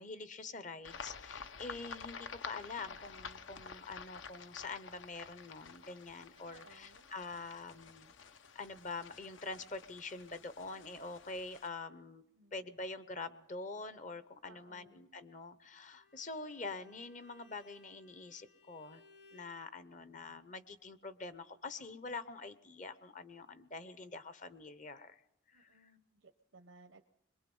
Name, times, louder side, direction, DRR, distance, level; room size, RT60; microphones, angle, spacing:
voice 1, 0.0-8.1 8.5-12.2 12.5-19.0 19.3-25.2 25.5-25.9, left 3 dB, 40° left, 13 dB, 0.8 m, -45 dB
sound 1, 0.8-11.7, left 5 dB, 75° left, 0.8 m, -50 dB
voice 2, 6.5-7.1 12.4-12.7 14.4-15.2 25.5-27.0, right 3 dB, 85° right, 6 dB, 0.9 m, -61 dB
Bowed string instrument, 15.9-19.6, left 4 dB, 60° left, 3.7 m, -64 dB
22.5 x 21.5 x 5.4 m, 0.82 s
head